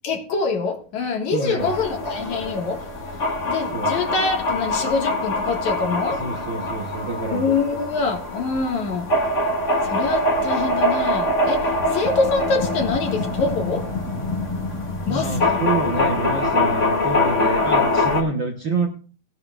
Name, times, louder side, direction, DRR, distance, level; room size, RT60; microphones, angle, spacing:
voice 1, 0.0-2.9 3.5-6.2 7.3-9.1 9.8-13.9 15.1-15.5, left 4 dB, 65° left, 3 dB, 3.0 m, -25 dB
voice 2, 1.3-1.7 3.7-4.0 6.2-7.5 15.1-18.9, right 3 dB, 55° right, 2 dB, 1.4 m, -27 dB
sound 1, 1.6-18.2, left 2 dB, 25° left, 2.2 m, -24 dB
19.5 x 10.5 x 2.4 m, 0.38 s
omnidirectional pair, 3.6 m